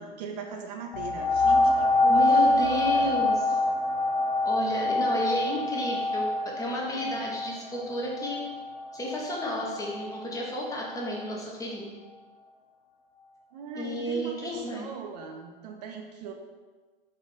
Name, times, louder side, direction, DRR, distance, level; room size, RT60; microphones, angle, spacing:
voice 1, 0.0-3.2 13.5-16.3, right 4 dB, 45° right, 3 dB, 0.5 m, -39 dB
sound 1, 0.9-10.2 10.8-10.9, left 2 dB, 55° left, 0.5 m, -25 dB
voice 2, 2.1-3.4 4.4-8.5 8.9-11.9 13.7-14.9, equal, 10° left, -2 dB, 0.6 m, -32 dB
4.2 x 2.5 x 3.7 m, 1.4 s
figure-of-eight pair, 100°, 29 cm